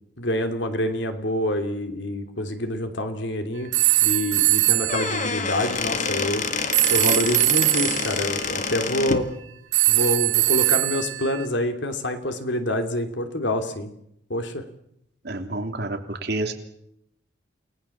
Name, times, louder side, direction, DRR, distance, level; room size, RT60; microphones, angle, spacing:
voice 1, 0.2-3.7 4.0-6.4 6.9-9.3 9.9-13.9 14.3-14.6, left 1 dB, 70° left, 6 dB, 3.0 m, -26 dB
sound 1, 3.7-6.0 6.7-8.1 9.7-11.4, right 17 dB, 90° right, 1.5 m, -21 dB
Squeak / Wood, 4.7-9.3, left 5 dB, 40° left, 1.7 m, -27 dB
voice 2, 15.2-16.5, right 2 dB, 60° right, 4 dB, 3.1 m, -29 dB
29.0 x 19.0 x 7.3 m, 0.76 s
head